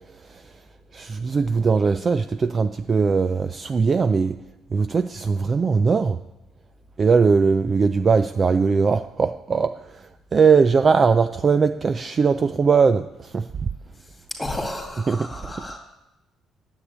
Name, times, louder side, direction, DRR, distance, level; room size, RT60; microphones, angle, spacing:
voice 1, 0.9-4.3 4.7-6.2 7.0-9.7 10.3-13.5 15.1-15.3, right 5 dB, 25° right, 10 dB, 0.3 m, -20 dB
voice 2, 14.4-15.8, left 1 dB, 5° left, 2 dB, 2.2 m, -32 dB
9.9 x 8.1 x 8.6 m, 0.93 s
cardioid pair, 155°, 0 cm